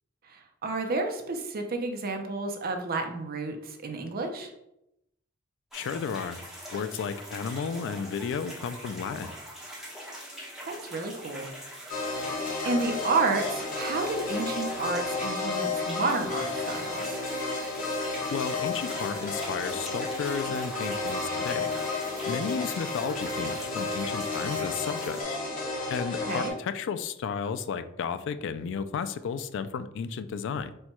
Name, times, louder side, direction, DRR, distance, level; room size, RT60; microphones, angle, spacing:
voice 1, 0.3-4.5 10.7-11.5 11.8-12.1 12.6-17.2 26.3-26.5, right 3 dB, 45° right, 5 dB, 0.6 m, -31 dB
voice 2, 5.7-6.4 6.7-9.3 18.3-21.7 22.3-25.2 25.9-30.7, left 6 dB, 60° left, 11 dB, 0.3 m, -33 dB
sound 1, 5.7-25.2, equal, ahead, 0.9 m, -43 dB
sound 2, 11.9-26.5, left 3 dB, 40° left, 1.0 m, -32 dB
4.4 x 2.2 x 4.3 m, 0.83 s
head